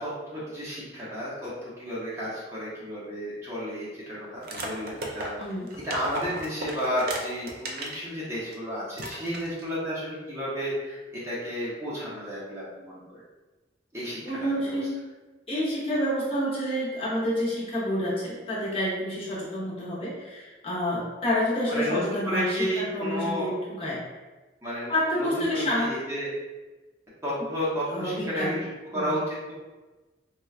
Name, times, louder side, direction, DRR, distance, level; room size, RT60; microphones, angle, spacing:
voice 1, 0.0-5.3 5.8-13.2 13.9-14.8 21.7-23.5 24.6-26.3 27.2-29.5, equal, 15° right, -9 dB, 0.8 m, -32 dB
sound 1, 4.4-8.0 8.5-8.6 8.9-9.7, right 1 dB, 55° right, 0.4 m, -35 dB
voice 2, 5.4-5.7 14.2-15.0 15.5-24.0 24.9-26.0 27.8-28.6 28.9-29.1, equal, 30° left, -7 dB, 0.8 m, -28 dB
4.2 x 2.3 x 2.4 m, 1.2 s
head